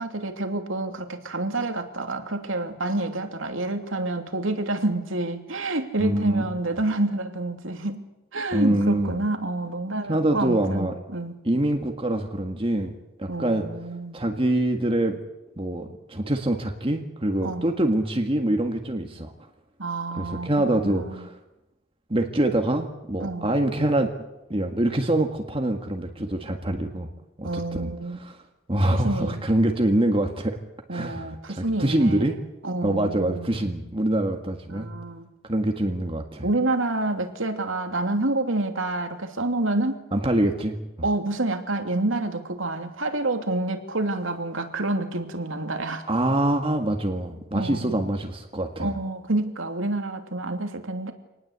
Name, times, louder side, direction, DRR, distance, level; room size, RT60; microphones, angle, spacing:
voice 1, 0.0-8.0 8.3-11.4 13.3-14.2 17.4-17.7 19.8-21.3 23.2-23.5 27.4-28.2 28.9-29.4 30.9-32.4 32.6-33.7 34.7-35.3 36.4-40.0 41.0-46.1 47.5-48.0 48.8-51.1, right 2 dB, 80° right, 5 dB, 2.8 m, -28 dB
voice 2, 6.0-6.4 8.5-9.1 10.1-11.0 11.4-12.9 13.2-13.7 14.1-15.2 15.6-19.3 20.1-21.3 22.1-24.1 24.5-27.1 27.4-27.9 28.2-28.4 28.7-30.6 30.9-32.4 32.8-34.9 35.4-36.5 40.1-40.8 46.1-48.9, right 1 dB, 25° right, 4 dB, 1.8 m, -25 dB
27.0 x 19.5 x 8.2 m, 0.95 s
head